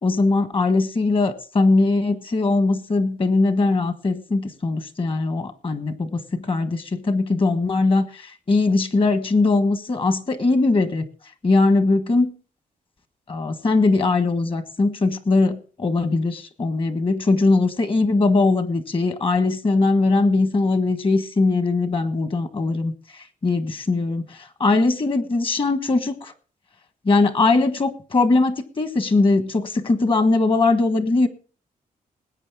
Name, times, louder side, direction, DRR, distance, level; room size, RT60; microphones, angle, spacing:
voice 1, 0.0-11.0 11.4-12.3 13.3-26.3 27.0-31.3, left 3 dB, 35° left, 10 dB, 1.3 m, -20 dB
20.0 x 8.8 x 3.6 m, 0.39 s
wide cardioid pair, 140°, 15 cm